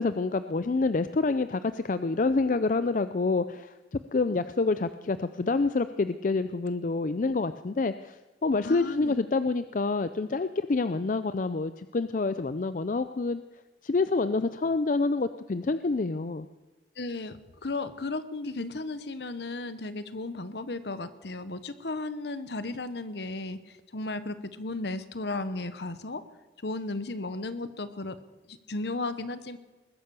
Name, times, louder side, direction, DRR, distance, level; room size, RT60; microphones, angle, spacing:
voice 1, 0.0-13.4 13.8-16.5, left 3 dB, 45° left, 12 dB, 0.4 m, -27 dB
voice 2, 8.6-9.1 17.0-26.2 26.6-28.2 28.5-29.6, left 2 dB, 65° left, 13 dB, 1.0 m, -35 dB
20.5 x 10.0 x 6.9 m, 1.2 s
head